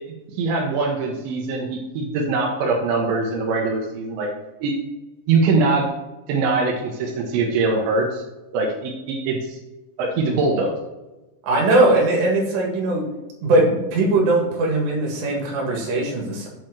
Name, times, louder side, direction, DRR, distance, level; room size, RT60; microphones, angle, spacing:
voice 1, 0.0-4.3 4.6-4.8 5.3-5.9 6.3-8.2 8.5-9.6 10.0-10.7, right 3 dB, 90° right, -1 dB, 3.5 m, -22 dB
voice 2, 11.4-13.1 13.4-16.5, right 2 dB, 70° right, -1 dB, 4.1 m, -20 dB
8.0 x 4.6 x 6.3 m, 1.1 s
omnidirectional pair, 5.1 m